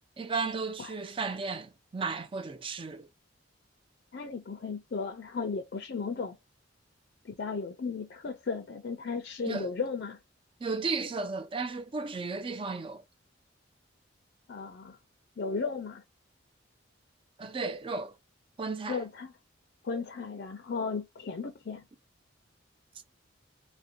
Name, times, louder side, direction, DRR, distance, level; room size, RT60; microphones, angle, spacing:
voice 1, 0.2-3.1 9.4-9.7 10.6-13.0 17.4-18.1 18.6-19.0, right 4 dB, 25° right, 0.4 m, -34 dB
voice 2, 4.1-6.4 7.2-10.2 14.5-15.0 15.4-16.0 18.9-19.3 19.8-21.8, left 4 dB, 55° left, 0.4 m, -35 dB
2.5 x 2.1 x 2.6 m
head